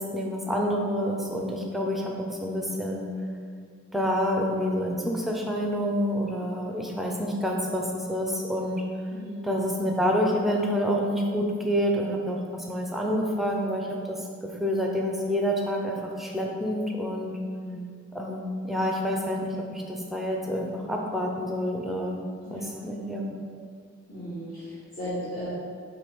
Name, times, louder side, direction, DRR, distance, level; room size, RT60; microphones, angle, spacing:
voice 1, 0.0-3.1 3.9-8.8 9.4-17.4 18.1-23.3, equal, ahead, 0 dB, 0.6 m, -28 dB
voice 2, 9.1-9.5 17.6-17.8 22.4-22.8 24.1-25.5, equal, 40° left, -12 dB, 1.7 m, -36 dB
7.9 x 3.3 x 5.4 m, 2.1 s
head